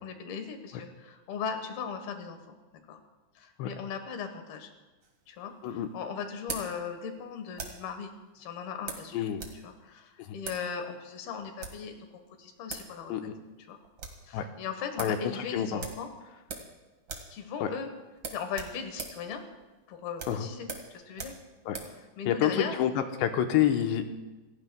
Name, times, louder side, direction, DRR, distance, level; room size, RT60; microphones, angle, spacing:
voice 1, 0.0-2.6 2.9-3.0 3.4-4.7 5.3-9.3 9.6-12.0 12.4-13.1 13.7-13.8 14.2-16.1 17.3-17.9 18.3-19.4 19.9-20.7 20.9-21.3 21.9-22.8, left 6 dB, 70° left, 6 dB, 3.0 m, -38 dB
sound 1, 5.0-7.9 8.9-9.6 9.9-10.0 10.4-10.7 11.4-11.9 12.4-12.5 12.7-12.9 13.2-13.3 13.6-14.2 14.6-14.7 15.0-15.2 15.8-16.8 17.0-17.4 17.6-17.8 18.2-22.0, right 4 dB, 90° right, 0.9 m, -41 dB
voice 2, 15.0-15.8 17.6-17.7 20.3-20.5 21.7-21.8 22.3-24.0, left 10 dB, 90° left, 6 dB, 3.1 m, -28 dB
28.0 x 16.0 x 2.3 m, 1.2 s
omnidirectional pair, 4.9 m